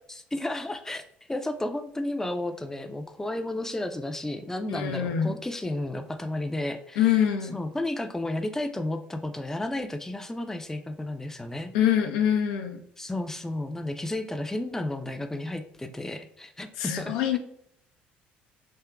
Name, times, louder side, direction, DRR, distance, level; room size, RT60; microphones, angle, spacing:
voice 1, 0.1-1.0 1.3-7.2 7.5-11.7 13.0-17.4, left 1 dB, 10° left, 7 dB, 0.4 m, -32 dB
voice 2, 4.7-5.3 7.0-7.6 11.7-12.8 16.8-17.4, left 9 dB, 75° left, 4 dB, 0.4 m, -24 dB
3.5 x 2.8 x 2.2 m, 0.69 s
hypercardioid pair, 60°, 5 cm